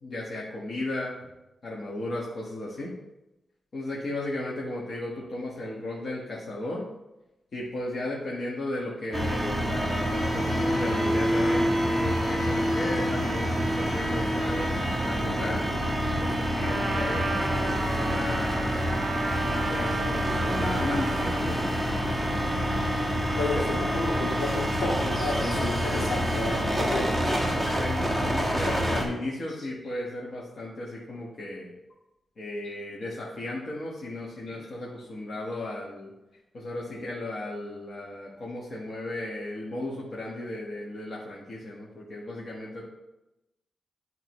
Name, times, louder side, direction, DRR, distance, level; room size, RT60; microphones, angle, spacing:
voice 1, 0.0-1.1 1.6-2.9 3.7-6.9 7.5-15.7 16.2-18.9 19.4-22.3 23.3-23.7 27.4-31.7 32.4-36.1 36.5-42.8, left 1 dB, 50° left, -5 dB, 1.3 m, -35 dB
sound 1, 9.1-29.1, equal, ahead, 1.3 m, -27 dB
Trumpet, 16.6-21.5, right 2 dB, 45° right, 1.8 m, -33 dB
voice 2, 23.4-27.2 34.5-34.6, left 2 dB, 80° left, -3 dB, 2.4 m, -31 dB
11.0 x 3.9 x 3.1 m, 0.95 s
wide cardioid pair, 125°, 0 cm